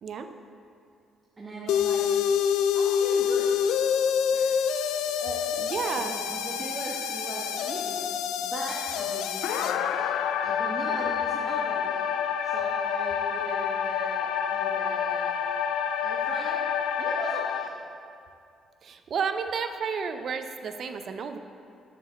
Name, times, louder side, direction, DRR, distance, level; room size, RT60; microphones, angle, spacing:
voice 1, 1.4-2.0 2.7-3.6 4.3-4.6 5.2-5.4 5.7-8.0 8.4-10.1 10.4-12.0 12.4-15.3 16.0-16.6 17.0-17.7, right 1 dB, 30° right, -4 dB, 1.1 m, -39 dB
sound 1, 1.7-17.7, left 8 dB, 90° left, 0.3 m, -27 dB
voice 2, 5.6-6.1 18.8-21.4, right 6 dB, 60° right, 8 dB, 0.5 m, -31 dB
6.8 x 5.0 x 6.1 m, 2.4 s
cardioid pair, 90°, 0 cm